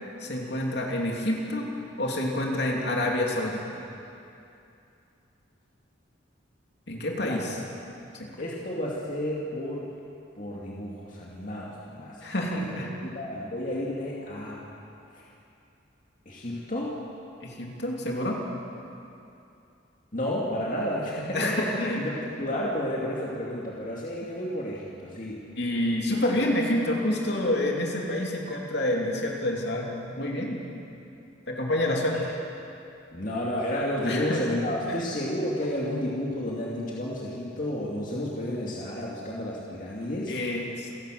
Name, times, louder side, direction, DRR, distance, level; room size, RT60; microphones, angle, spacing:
voice 1, 0.2-1.7 2.0-3.8 6.9-7.6 8.1-8.3 12.2-12.9 17.4-18.4 21.3-22.0 25.6-30.6 31.5-32.3 34.1-34.4 40.3-40.9, left 1 dB, 60° left, -1 dB, 3.0 m, -28 dB
voice 2, 8.4-9.8 10.4-12.3 12.6-14.6 15.1-15.3 16.3-16.9 20.1-25.4 33.1-40.4, left 1 dB, 45° left, -5 dB, 2.4 m, -31 dB
28.0 x 12.0 x 7.7 m, 2.7 s
head